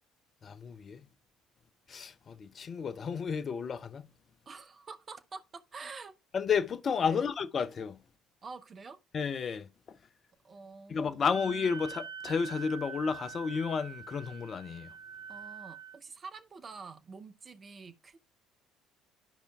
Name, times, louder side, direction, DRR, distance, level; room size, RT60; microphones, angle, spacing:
voice 1, 0.4-1.0 1.9-4.1 6.3-8.0 9.1-9.7 10.9-14.9, left 6 dB, 40° left, 0.5 m, -32 dB
voice 2, 4.5-6.1 7.1-7.3 8.4-9.0 10.4-11.4 15.3-18.2, right 4 dB, 30° right, 0.7 m, -47 dB
Wind instrument woodwind instrument, 11.3-16.0, right 6 dB, 90° right, 0.5 m, -45 dB
12.0 x 5.0 x 2.3 m
figure-of-eight pair, 55°, 0 cm